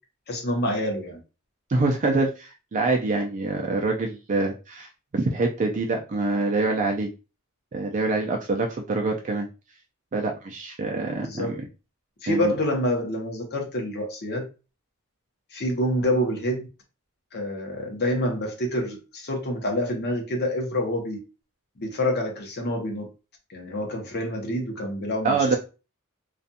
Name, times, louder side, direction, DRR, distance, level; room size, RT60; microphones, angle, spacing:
voice 1, 0.3-1.2 11.2-11.6 12.2-14.5 15.5-16.7 17.3-21.2 21.8-23.1 23.5-25.6, left 1 dB, 50° left, 2 dB, 0.8 m, -27 dB
voice 2, 1.7-7.1 7.7-9.5 10.1-11.6 12.3-12.5 25.2-25.6, right 3 dB, 35° right, 2 dB, 0.4 m, -25 dB
2.5 x 2.2 x 2.6 m, 0.31 s
head